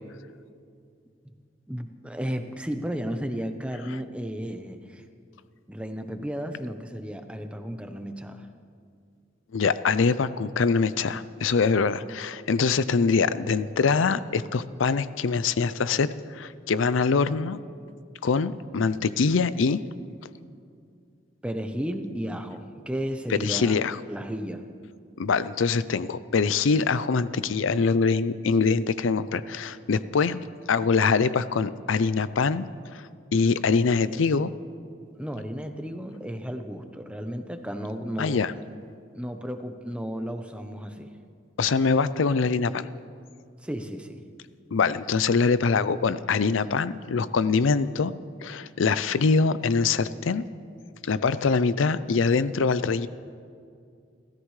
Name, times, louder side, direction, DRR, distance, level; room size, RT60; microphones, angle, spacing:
voice 1, 1.7-5.0 5.7-8.5 21.4-23.8 24.1-24.6 35.2-38.4 39.1-41.1 43.6-44.2, equal, 5° right, 6 dB, 0.8 m, -33 dB
voice 2, 9.5-17.6 18.2-19.8 23.3-24.0 25.2-30.4 30.7-32.7 32.9-34.5 38.2-38.5 41.6-42.9 44.7-48.1 48.4-50.4 51.0-53.1, left 4 dB, 85° left, 15 dB, 0.5 m, -24 dB
30.0 x 14.5 x 3.3 m, 2.3 s
head